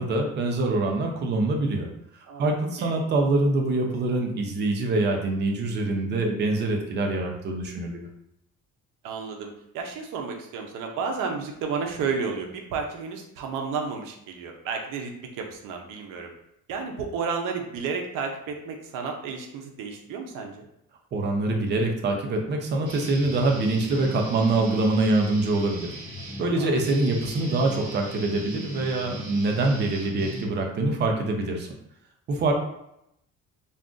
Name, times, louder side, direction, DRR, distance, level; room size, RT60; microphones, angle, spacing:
voice 1, 0.0-1.9 2.4-8.1 21.1-25.9 26.4-31.7 32.3-32.5, right 2 dB, 35° right, 2 dB, 0.5 m, -24 dB
voice 2, 9.0-16.3 16.7-20.7 26.4-26.7 29.9-30.2, right 5 dB, 85° right, 2 dB, 0.6 m, -32 dB
Guitar, 22.8-30.9, right 1 dB, 65° right, 1.1 m, -39 dB
2.5 x 2.4 x 3.6 m, 0.79 s
cardioid pair, 180°, 31 cm